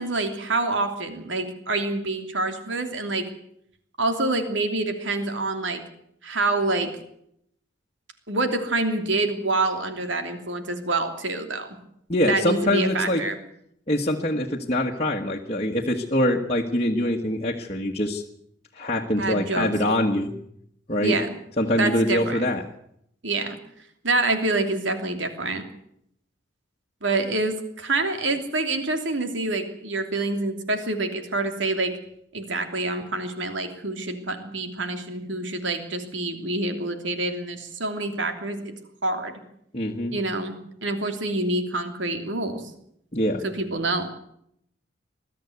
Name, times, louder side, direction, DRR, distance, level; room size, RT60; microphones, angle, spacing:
voice 1, 0.0-3.3 4.0-5.8 6.2-6.9 8.3-11.7 12.3-13.4 19.2-19.7 21.0-21.3 21.8-22.4 23.2-23.6 24.0-25.6 27.0-31.9 32.3-38.7 39.0-39.3 40.1-40.5 40.8-42.6 43.4-44.1, right 2 dB, 75° right, 6 dB, 3.0 m, -26 dB
voice 2, 12.1-13.2 13.9-18.2 18.7-20.3 20.9-21.2 21.6-22.6 39.7-40.1 43.1-43.4, left 1 dB, 30° left, -2 dB, 1.4 m, -24 dB
21.0 x 13.0 x 9.5 m, 0.73 s
head